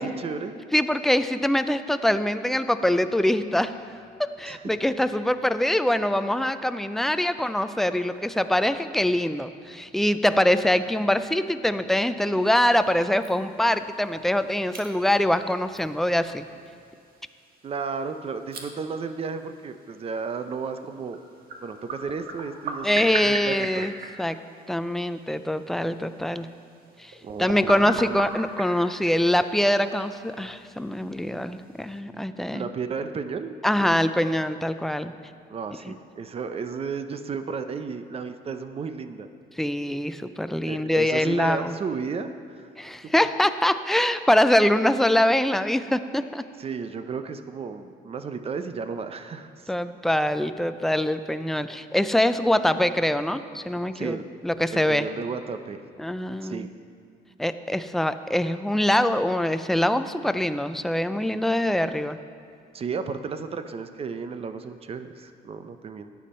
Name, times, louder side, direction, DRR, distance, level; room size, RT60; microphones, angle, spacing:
voice 1, 0.0-0.5 4.4-4.6 17.6-21.2 21.6-23.8 27.2-28.0 32.5-33.5 33.8-33.9 35.5-39.3 40.7-42.7 46.6-49.7 53.9-54.2 54.7-55.8 56.4-56.7 62.7-66.1, right 5 dB, 35° right, 9 dB, 0.7 m, -33 dB
voice 2, 0.7-3.8 4.4-16.5 22.8-23.9 24.2-24.4 24.7-26.5 27.0-27.1 27.4-32.7 33.6-35.1 35.9-36.0 39.6-41.8 42.8-46.4 49.7-54.2 54.4-55.1 56.0-56.7 57.4-62.2, left 1 dB, ahead, 10 dB, 0.4 m, -24 dB
sound 1, 12.4-32.0, right 4 dB, 60° right, 1.5 m, -41 dB
14.5 x 9.4 x 4.3 m, 2.2 s
cardioid pair, 110°, 17 cm